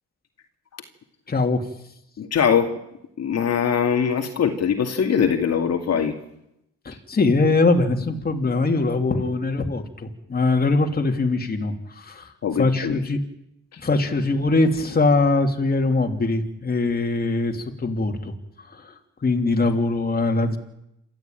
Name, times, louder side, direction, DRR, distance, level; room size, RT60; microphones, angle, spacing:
voice 1, 1.3-1.6 6.8-12.3 12.6-13.2 13.8-18.3 18.6-18.9 19.2-20.6, left 3 dB, 30° left, 4 dB, 3.0 m, -22 dB
voice 2, 2.2-2.8 3.2-6.1 12.4-13.0 13.7-13.8, left 7 dB, 55° left, 4 dB, 2.3 m, -22 dB
28.0 x 13.5 x 9.1 m, 0.82 s
cardioid pair, 90°, 30 cm